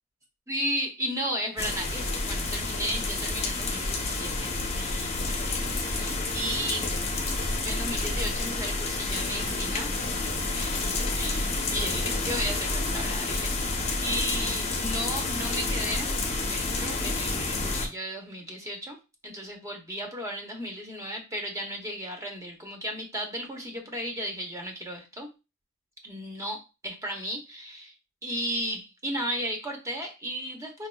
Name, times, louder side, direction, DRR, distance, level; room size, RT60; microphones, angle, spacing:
voice 1, 0.5-6.9 7.6-9.9 10.5-16.1 16.5-19.0 19.2-25.3 26.0-27.9 28.2-30.9, equal, 15° right, 2 dB, 0.9 m, -35 dB
sound 1, 1.6-17.9, left 3 dB, 30° left, 0.8 m, -29 dB
5.2 x 2.8 x 2.3 m, 0.27 s
head